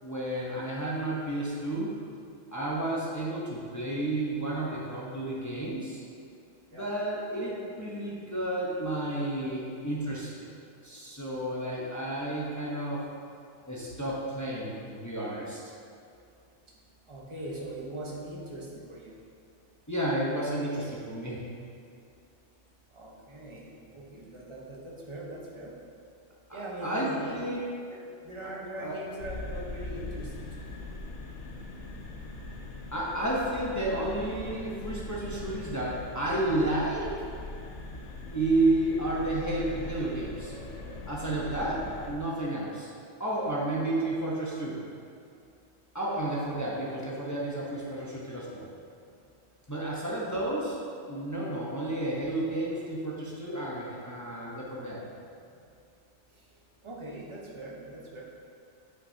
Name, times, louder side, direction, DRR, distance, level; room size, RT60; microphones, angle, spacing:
voice 1, 0.0-1.9 2.5-6.0 6.7-10.3 10.8-13.0 13.7-15.6 19.9-21.4 26.5-27.6 28.4-28.5 28.8-28.9 32.9-37.2 38.3-40.5 41.1-42.9 43.2-44.8 45.9-48.6 49.7-50.8 51.1-55.0, right 1 dB, 15° left, -6 dB, 0.9 m, -31 dB
voice 2, 17.1-19.2 22.9-25.7 26.5-27.4 27.9-28.0 28.2-30.7 56.8-58.2, right 1 dB, 25° right, -4 dB, 1.1 m, -41 dB
sound 1, 29.2-42.2, left 2 dB, 75° left, 1.0 m, -41 dB
9.0 x 5.6 x 2.8 m, 2.4 s
omnidirectional pair, 1.2 m